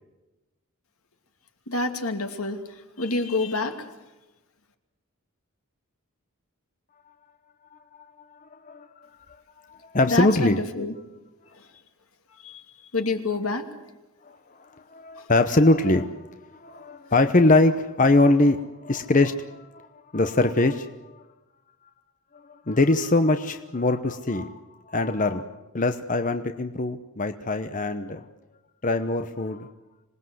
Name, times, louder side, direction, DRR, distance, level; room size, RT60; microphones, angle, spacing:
voice 1, 1.7-2.6 3.0-3.9 10.1-10.9 12.4-12.6 12.9-13.6, left 2 dB, 85° left, 6 dB, 2.6 m, -27 dB
voice 2, 7.7-9.1 9.7-10.6 14.2-14.3 14.9-19.9 20.1-21.2 22.5-24.5 24.9-25.5 25.7-28.2 28.8-29.7, left 2 dB, 35° left, 8 dB, 0.9 m, -23 dB
26.0 x 19.5 x 7.9 m, 1.1 s
head